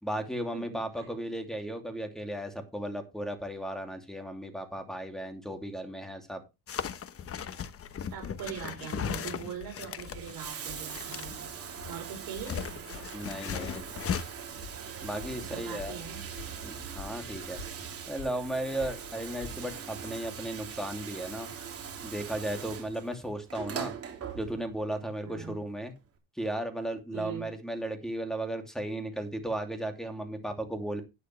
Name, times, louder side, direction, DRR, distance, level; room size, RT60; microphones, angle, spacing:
voice 1, 0.0-6.4 13.1-13.9 15.0-16.0 16.6-17.6 18.1-21.5 22.0-23.9 24.3-25.9 26.4-31.0, right 1 dB, ahead, 5 dB, 2.8 m, -35 dB
voice 2, 0.5-1.1 8.1-11.5 11.8-12.8 15.4-16.2 25.2-25.6 27.1-27.5, right 8 dB, 65° right, 1 dB, 5.5 m, -41 dB
sound 1, 6.7-10.4 10.9-11.3 11.8-14.2, left 8 dB, 35° left, 1.1 m, -37 dB
sound 2, 7.9-19.7, left 6 dB, 75° left, 4.1 m, -50 dB
Bathtub (filling or washing), 9.9-24.9 26.0-26.1, right 7 dB, 35° right, 3.2 m, -41 dB
12.0 x 9.2 x 3.4 m, 0.25 s
cardioid pair, 135°, 38 cm